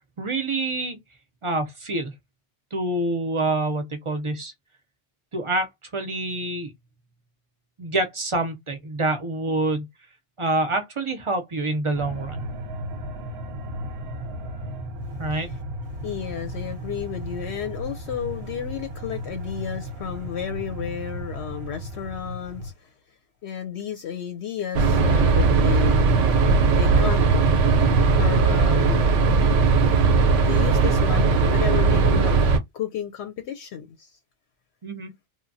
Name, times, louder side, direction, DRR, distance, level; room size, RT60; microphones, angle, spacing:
voice 1, 0.2-1.0 1.4-2.1 2.7-4.5 5.3-6.7 7.8-9.9 10.4-12.4 15.2-15.5 34.8-35.1, right 2 dB, 40° right, 0.5 m, -26 dB
sound 1, 11.9-22.7, equal, 65° right, 0.7 m, -35 dB
voice 2, 15.3-15.6 16.0-22.9 23.4-26.1 26.8-27.2 28.2-29.1 30.5-32.5 32.7-34.1, left 9 dB, 70° left, 0.8 m, -32 dB
sound 2, 24.7-32.6, right 4 dB, 90° right, 0.9 m, -18 dB
3.0 x 2.2 x 2.5 m
omnidirectional pair, 1.2 m